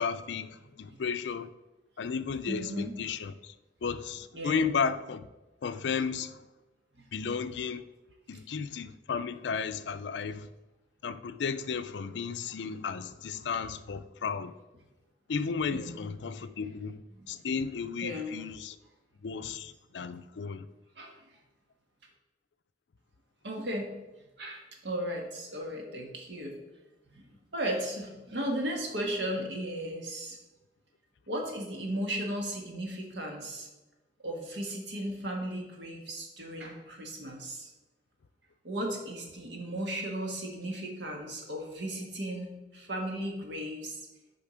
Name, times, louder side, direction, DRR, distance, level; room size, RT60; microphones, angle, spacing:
voice 1, 0.0-1.5 2.0-3.5 3.8-5.3 5.6-6.4 7.1-7.8 8.3-10.5 11.0-14.5 15.3-17.0 17.3-18.8 19.2-20.6, left 5 dB, 80° left, 0.4 m, -34 dB
voice 2, 2.5-2.9 4.3-4.7 15.7-16.0 16.3-16.5 17.1-17.3 18.0-18.4 20.9-21.2 23.4-23.9 24.4-26.6 27.1-30.4 31.3-33.7 34.2-37.7 38.6-44.0, right 1 dB, 80° right, 1.5 m, -36 dB
7.0 x 5.0 x 4.9 m
head